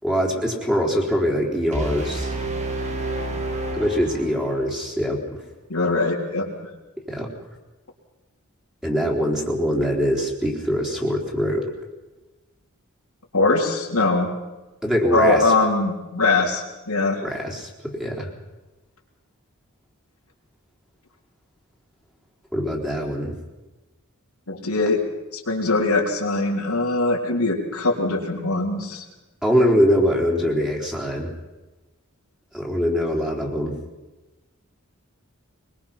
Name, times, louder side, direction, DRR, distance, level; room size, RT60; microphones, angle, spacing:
voice 1, 0.0-2.3 3.7-5.4 7.1-7.3 8.8-11.7 14.8-15.5 17.2-18.3 22.5-23.3 29.4-31.3 32.5-33.8, equal, 5° right, -1 dB, 3.9 m, -23 dB
sound 1, 1.7-4.7, right 2 dB, 30° right, 2.5 m, -29 dB
voice 2, 5.7-6.5 13.3-14.3 15.1-17.2 24.5-25.0 25.3-29.0, left 3 dB, 85° left, 0 dB, 3.6 m, -22 dB
23.0 x 22.0 x 5.9 m, 1.1 s
head